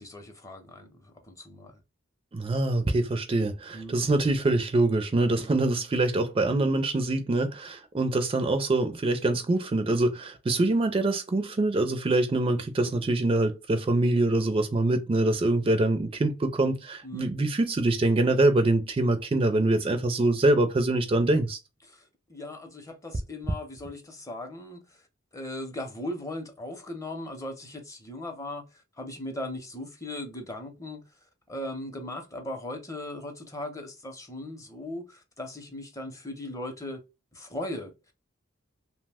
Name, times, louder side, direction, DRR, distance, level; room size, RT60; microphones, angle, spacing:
voice 1, 0.0-1.8 3.7-4.0 5.4-5.6 17.0-17.3 21.8-25.0 25.3-31.0 31.5-37.0 37.3-37.9, left 1 dB, 15° left, 0.6 m, -38 dB
voice 2, 2.3-21.6, right 2 dB, 25° right, 0.4 m, -24 dB
2.8 x 2.1 x 3.3 m
head